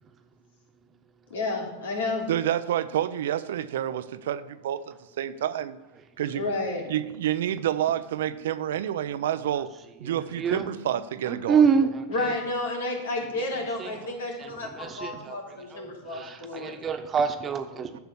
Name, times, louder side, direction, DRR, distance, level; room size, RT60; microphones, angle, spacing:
voice 1, 1.3-2.3 6.3-6.8 12.1-16.7, left 2 dB, 80° left, 3.5 m, -31 dB
voice 2, 2.3-5.8 6.2-6.5 6.9-9.7 10.0-11.6 15.1-15.6 16.1-16.3 16.6-16.8 17.9-18.0, right 11 dB, 75° right, 0.6 m, -29 dB
voice 3, 10.0-10.7 11.3-12.4 13.2-14.0 14.4-15.4 15.7-18.0, right 6 dB, 30° right, 1.2 m, -27 dB
10.5 x 6.8 x 7.0 m
hypercardioid pair, 100°, 0 cm